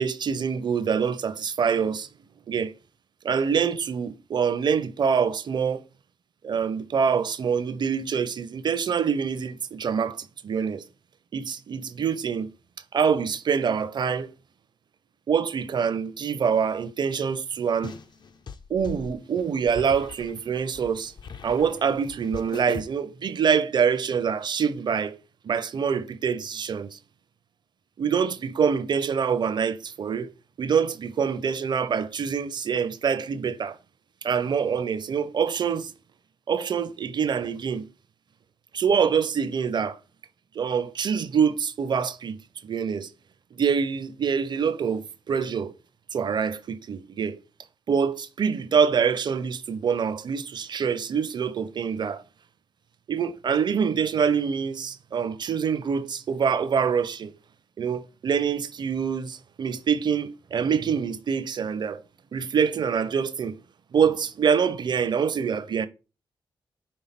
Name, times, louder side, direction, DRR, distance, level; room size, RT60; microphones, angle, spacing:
voice 1, 0.0-2.1 2.5-2.7 3.2-5.8 6.4-10.8 11.3-12.5 12.9-14.3 15.3-17.9 18.7-21.1 21.4-25.2 25.4-27.0 28.0-30.3 30.6-33.8 34.2-35.9 36.5-37.9 38.7-40.0 40.6-43.1 43.5-45.7 46.1-47.4 47.9-52.2 53.1-57.3 57.8-62.0 62.3-63.5 63.9-65.9, right 6 dB, 55° right, 0.6 m, -25 dB
sound 1, 17.8-22.8, left 5 dB, 55° left, 0.5 m, -41 dB
5.5 x 3.4 x 5.8 m
cardioid pair, 100°, 9 cm